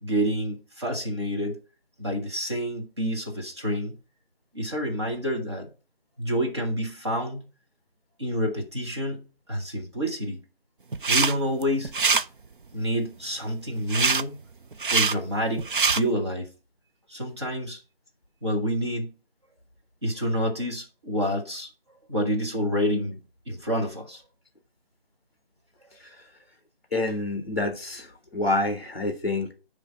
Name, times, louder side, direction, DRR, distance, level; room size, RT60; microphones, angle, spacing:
voice 1, 0.0-1.6 2.0-4.0 4.5-5.7 6.2-7.4 8.2-9.2 9.5-10.4 11.1-11.9 12.7-14.4 14.9-16.5 17.1-17.8 18.4-19.1 20.0-21.7 22.1-23.2 23.5-24.2, equal, 30° right, 1.3 m, -28 dB
sound 1, 10.9-11.3 11.6-12.2 13.9-14.2 14.7-15.1 15.6-16.0, right 4 dB, 60° right, 0.5 m, -23 dB
voice 2, 26.9-29.5, left 2 dB, 10° left, 1.2 m, -27 dB
10.0 x 3.3 x 5.3 m
figure-of-eight pair, 175°, 30 cm